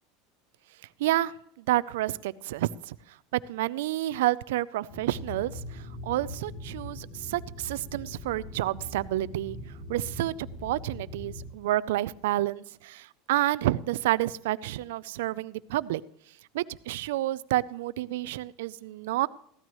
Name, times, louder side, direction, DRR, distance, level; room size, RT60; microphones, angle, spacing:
voice 1, 1.0-9.6 9.9-16.0 16.5-19.3, right 15 dB, 85° right, 0.5 m, -29 dB
sound 1, 4.9-11.5, left 1 dB, 75° left, 3.7 m, -41 dB
15.5 x 12.5 x 3.1 m
supercardioid pair, 155°, 0 cm